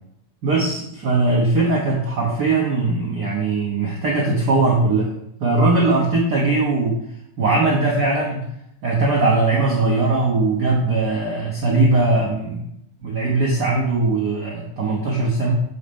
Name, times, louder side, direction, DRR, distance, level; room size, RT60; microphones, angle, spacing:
voice 1, 0.4-5.1 5.4-7.0 7.4-8.4 8.8-12.7 13.0-15.5, right 3 dB, 70° right, -3 dB, 0.9 m, -20 dB
6.5 x 4.2 x 5.2 m, 0.77 s
omnidirectional pair, 3.3 m